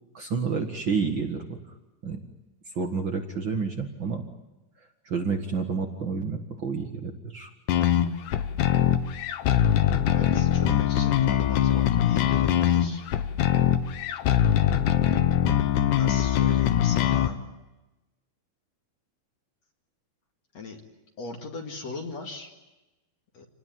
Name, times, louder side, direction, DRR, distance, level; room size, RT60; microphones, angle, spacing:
voice 1, 0.1-1.6 2.0-2.2 2.7-4.2 5.0-7.5, right 5 dB, 55° right, 4 dB, 1.3 m, -29 dB
sound 1, 7.7-17.3, left 10 dB, 70° left, 2.1 m, -22 dB
voice 2, 10.0-13.0 13.9-14.0 15.9-17.4 20.5-20.8 21.2-22.5 23.3-23.5, left 4 dB, 50° left, 2 dB, 2.9 m, -38 dB
27.5 x 19.5 x 9.3 m, 1.0 s
omnidirectional pair, 4.7 m